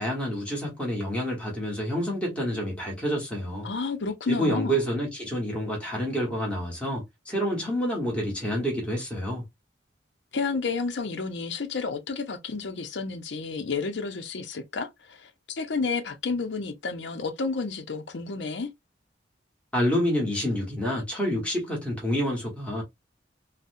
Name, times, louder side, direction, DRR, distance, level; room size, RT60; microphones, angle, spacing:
voice 1, 0.0-3.7 4.3-9.4 19.7-22.8, equal, 5° left, 1.2 m, -28 dB
voice 2, 3.6-4.8 10.3-18.7, left 4 dB, 70° left, 0.6 m, -31 dB
4.0 x 2.1 x 2.5 m
head